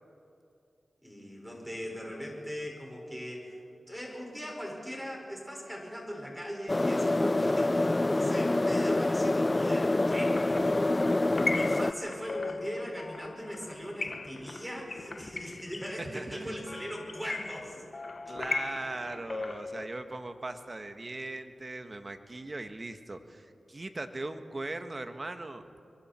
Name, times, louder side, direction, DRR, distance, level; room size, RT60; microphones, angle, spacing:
voice 1, 1.0-3.6 3.9-11.1 11.5-17.8, equal, 5° right, -1 dB, 5.6 m, -40 dB
sound 1, 6.7-11.9, left 2 dB, 30° left, 0.4 m, -26 dB
sound 2, 10.1-19.9, left 3 dB, 55° left, 1.0 m, -38 dB
voice 2, 16.0-16.5 18.2-25.7, right 2 dB, 40° right, 8 dB, 1.5 m, -39 dB
25.5 x 23.0 x 4.5 m, 2.6 s
cardioid pair, 55°, 0 cm